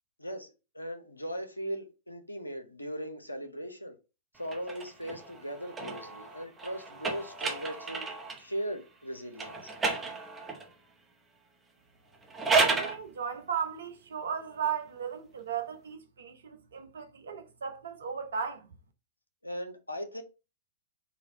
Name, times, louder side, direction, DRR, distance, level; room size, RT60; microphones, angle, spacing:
voice 1, 0.2-4.0 4.3-8.1 8.4-9.7 19.4-20.2, equal, 90° left, 0.6 m, -38 dB
sound 1, 4.4-8.5 9.3-10.7 12.1-13.0, right 4 dB, 20° right, 0.9 m, -32 dB
voice 2, 12.6-18.7, right 7 dB, 70° right, 0.7 m, -36 dB
4.2 x 2.4 x 4.0 m
figure-of-eight pair, 100°, 0 cm